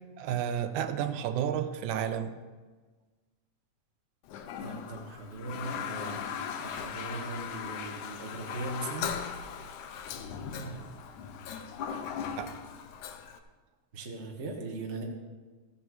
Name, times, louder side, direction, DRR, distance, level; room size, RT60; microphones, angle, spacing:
voice 1, 0.2-2.4 10.6-10.8 12.4-12.5, right 9 dB, 85° right, 10 dB, 2.2 m, -32 dB
Toilet flush, 4.3-13.4, left 7 dB, 85° left, 2.3 m, -38 dB
voice 2, 4.6-6.2 6.6-9.2 13.9-15.0, right 2 dB, 35° right, 1 dB, 1.1 m, -39 dB
15.0 x 7.9 x 6.3 m, 1.3 s
omnidirectional pair, 3.5 m